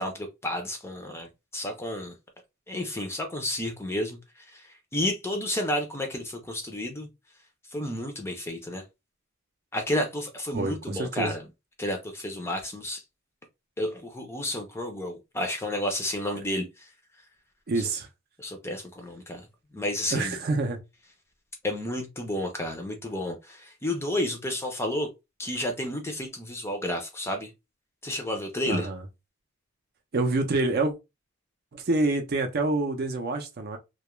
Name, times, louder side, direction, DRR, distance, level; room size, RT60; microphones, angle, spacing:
voice 1, 0.0-2.1 2.7-7.1 7.7-8.8 9.7-11.5 11.8-13.0 13.8-16.9 18.4-19.5 19.7-20.4 21.6-25.1 25.4-27.5 28.0-28.9, left 1 dB, 10° left, 0.4 m, -31 dB
voice 2, 10.5-11.3 17.7-18.1 20.1-20.8 28.7-29.0 30.1-30.9 31.7-33.8, right 2 dB, 45° right, 0.5 m, -27 dB
2.3 x 2.1 x 3.0 m
head